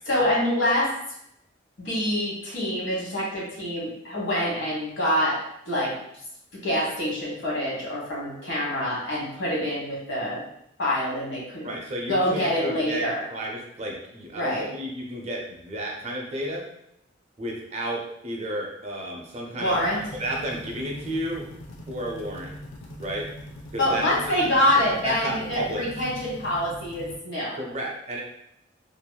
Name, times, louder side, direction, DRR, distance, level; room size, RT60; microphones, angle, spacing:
voice 1, 0.1-0.9 1.8-5.4 5.6-5.9 6.6-10.4 10.8-11.8 12.1-13.2 14.3-14.7 19.6-20.0 23.8-27.6, left 1 dB, 70° left, -6 dB, 1.2 m, -25 dB
voice 2, 11.6-16.6 17.4-19.8 20.1-21.5 21.9-22.5 23.0-23.3 23.7-24.5 24.8-25.9 27.5-28.2, right 1 dB, 35° right, -1 dB, 0.4 m, -32 dB
sound 1, 19.6-27.2, equal, 90° left, 0.5 m, -42 dB
2.8 x 2.5 x 2.2 m, 0.77 s
head